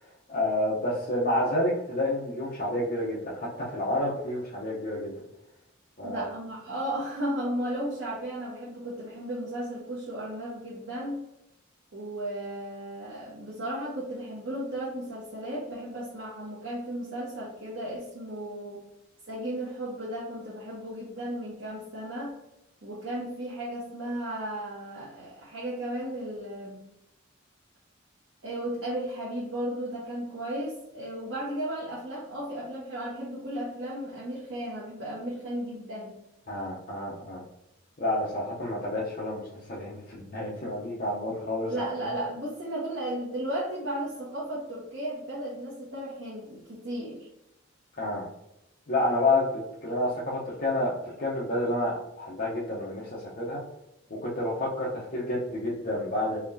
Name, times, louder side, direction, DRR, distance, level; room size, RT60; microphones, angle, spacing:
voice 1, 0.3-5.1 6.0-6.2 36.5-37.4 38.0-41.9 48.0-48.3 48.9-53.6 54.1-56.4, left 1 dB, 45° left, -6 dB, 0.8 m, -29 dB
voice 2, 6.0-11.2 11.9-18.8 19.3-22.4 22.8-26.8 28.4-36.1 41.6-47.3, right 1 dB, 60° right, -7 dB, 1.1 m, -35 dB
4.1 x 3.1 x 2.7 m, 0.85 s
head